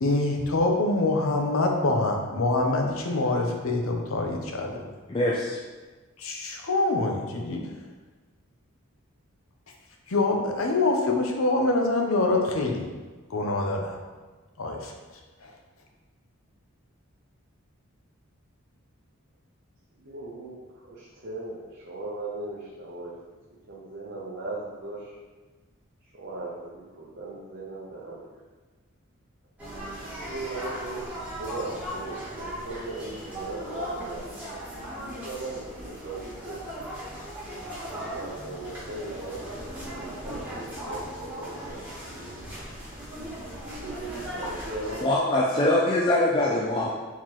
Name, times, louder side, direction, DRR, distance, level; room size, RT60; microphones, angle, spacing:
voice 1, 0.0-4.8 6.2-7.7 10.1-12.9 13.3-14.0 14.6-14.9 15.4-15.5, left 2 dB, 75° left, 2 dB, 0.7 m, -25 dB
voice 2, 5.1-5.6 45.0-46.9, left 1 dB, 25° left, -4 dB, 0.3 m, -23 dB
voice 3, 20.0-23.1 23.7-25.2 26.1-28.3 30.2-36.6 37.9-42.4 43.7-45.1 46.4-46.9, right 2 dB, 50° right, -6 dB, 0.7 m, -38 dB
sound 1, 29.6-45.0, equal, 5° right, 1.1 m, -38 dB
4.6 x 3.7 x 2.9 m, 1.3 s
head